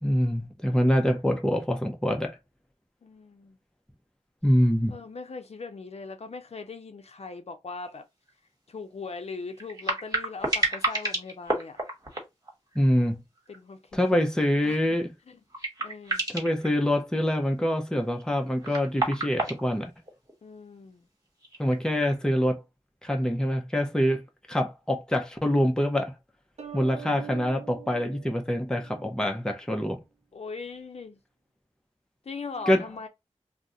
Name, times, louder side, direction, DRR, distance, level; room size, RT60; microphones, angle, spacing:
voice 1, 0.0-2.4 4.4-5.0 12.7-13.2 13.9-15.1 16.3-19.9 21.6-22.6 23.0-24.2 24.5-26.1 26.7-30.0 32.7-32.8, equal, 5° left, 0.7 m, -25 dB
voice 2, 3.0-3.6 4.9-8.1 8.7-11.8 13.5-13.8 14.6-14.8 15.3-15.4 15.8-16.2 20.4-21.1 27.0-27.5 30.3-31.2 32.2-33.1, left 4 dB, 65° left, 0.6 m, -40 dB
sound 1, 7.9-8.0 8.3-8.4 9.5-13.0 13.4-13.7 14.1-14.2 15.1-15.2 15.5-16.7 18.2-20.3 21.4-22.1, right 2 dB, 30° right, 1.4 m, -30 dB
sound 2, 26.6-29.2, right 10 dB, 70° right, 0.8 m, -44 dB
2.5 x 2.1 x 3.8 m
wide cardioid pair, 60°, 12 cm